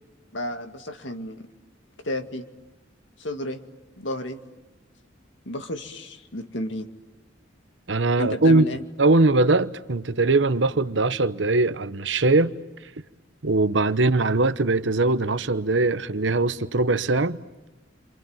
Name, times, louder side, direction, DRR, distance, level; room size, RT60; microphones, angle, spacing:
voice 1, 0.3-1.5 2.0-2.5 3.2-3.6 4.0-4.4 5.5-6.9 8.2-8.8, left 1 dB, 70° left, 2.2 m, -32 dB
voice 2, 7.9-8.6 9.0-12.5 13.4-17.4, right 2 dB, 70° right, 1.0 m, -21 dB
29.5 x 27.0 x 7.3 m
head